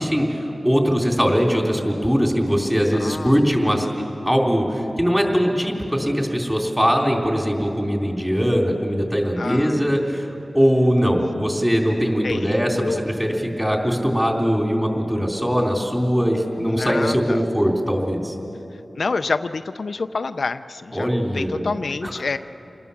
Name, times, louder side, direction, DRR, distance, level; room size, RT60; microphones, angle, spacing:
voice 1, 0.0-10.3 10.5-18.4 20.9-22.4, equal, 5° right, 0 dB, 3.5 m, -21 dB
voice 2, 3.0-3.3 9.4-9.8 12.2-13.0 16.7-17.4 19.0-22.4, left 4 dB, 75° left, 10 dB, 0.4 m, -27 dB
27.5 x 19.5 x 7.1 m, 3.0 s
wide cardioid pair, 90°, 0 cm